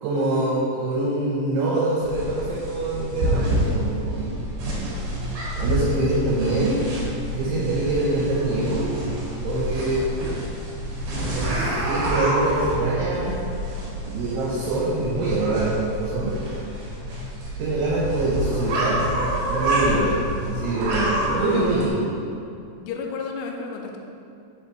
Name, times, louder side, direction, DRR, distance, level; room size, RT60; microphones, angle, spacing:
voice 1, 0.0-4.9 5.2-6.8 7.3-8.9 9.4-10.1 11.1-13.4 13.9-16.4 17.6-19.0 19.5-20.2 20.4-21.9, right 2 dB, 80° right, -6 dB, 3.1 m, -25 dB
sound 1, 2.0-21.9, right 1 dB, 60° right, 2.7 m, -27 dB
voice 2, 22.8-24.0, left 5 dB, 85° left, 2 dB, 3.2 m, -31 dB
7.2 x 5.0 x 4.4 m, 2.5 s
omnidirectional pair, 5.7 m